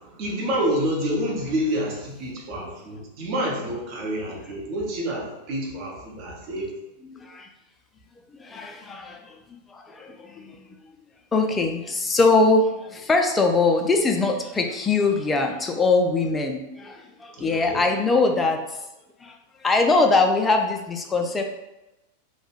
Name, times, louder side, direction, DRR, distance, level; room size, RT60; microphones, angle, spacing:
voice 1, 0.0-6.7 17.3-17.8, equal, 40° right, -3 dB, 0.7 m, -28 dB
voice 2, 7.1-7.5 8.3-9.4 9.7-10.6 11.3-18.9 19.2-19.4 19.6-21.4, left 3 dB, 15° left, 3 dB, 0.3 m, -22 dB
2.2 x 2.1 x 3.0 m, 0.95 s
figure-of-eight pair, 90°, 0 cm